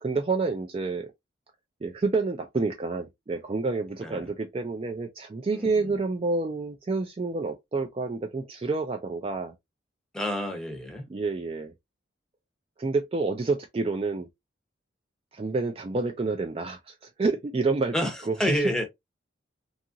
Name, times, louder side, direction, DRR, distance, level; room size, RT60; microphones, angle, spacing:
voice 1, 0.0-1.1 1.8-9.5 11.1-11.7 12.8-14.3 15.3-17.9 18.3-18.4, right 3 dB, 30° right, 0.3 m, -28 dB
voice 2, 5.5-6.0 10.1-11.0 17.9-18.9, equal, 5° left, 0.7 m, -29 dB
2.8 x 2.4 x 2.5 m
head